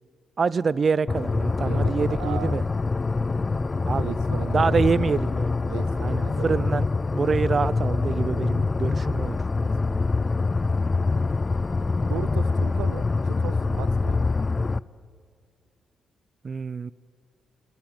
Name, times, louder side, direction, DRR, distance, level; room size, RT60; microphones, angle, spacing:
voice 1, 0.4-2.6 3.9-4.1 4.5-5.5 6.0-9.4 16.4-16.9, right 5 dB, 45° right, 20 dB, 0.7 m, -26 dB
sound 1, 1.1-14.8, left 3 dB, 35° left, 0.6 m, -25 dB
voice 2, 1.6-2.7 3.9-4.9 5.7-6.6 9.5-10.3 12.0-14.5, right 12 dB, 90° right, 17 dB, 0.7 m, -37 dB
26.0 x 25.5 x 9.0 m, 2.2 s
supercardioid pair, 55°, 0 cm